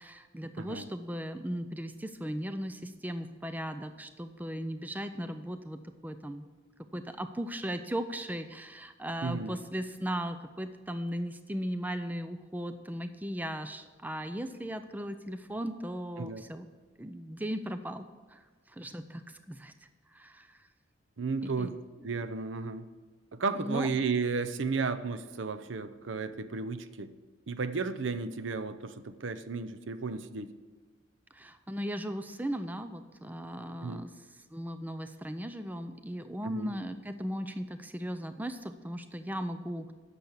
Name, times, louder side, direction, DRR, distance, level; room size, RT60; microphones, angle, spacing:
voice 1, 0.0-6.5 6.9-16.7 17.0-19.7 20.1-20.6 21.3-21.7 23.5-23.9 31.3-39.9, equal, 10° right, 9 dB, 0.4 m, -37 dB
voice 2, 0.6-0.9 9.2-9.6 16.2-16.4 21.2-21.7 22.0-22.9 23.3-27.1 27.5-30.5 33.8-34.0 36.4-36.7, right 4 dB, 70° right, 12 dB, 0.6 m, -33 dB
10.5 x 7.0 x 8.1 m, 1.4 s
head